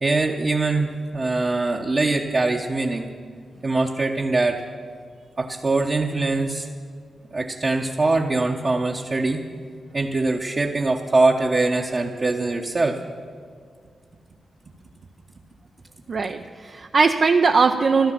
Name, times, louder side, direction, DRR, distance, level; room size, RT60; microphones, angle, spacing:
voice 1, 0.0-3.1 3.6-4.6 5.4-6.7 7.3-9.4 9.9-13.0, right 3 dB, 40° right, 0 dB, 1.0 m, -22 dB
voice 2, 16.1-18.1, right 4 dB, 55° right, 4 dB, 0.6 m, -19 dB
14.0 x 12.0 x 7.5 m, 2.1 s
cardioid pair, 90°, 0 cm